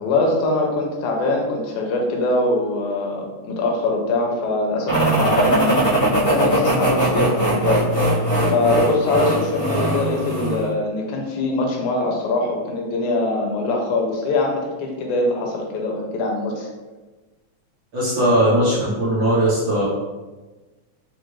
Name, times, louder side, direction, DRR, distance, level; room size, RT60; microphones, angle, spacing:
voice 1, 0.0-5.9 6.2-7.8 8.1-16.7, left 2 dB, 80° left, 0 dB, 2.1 m, -23 dB
sound 1, 4.9-10.7, right 1 dB, 50° left, 1.0 m, -20 dB
voice 2, 17.9-19.9, right 1 dB, 75° right, -10 dB, 1.0 m, -19 dB
4.9 x 2.5 x 3.1 m, 1.2 s
omnidirectional pair, 3.4 m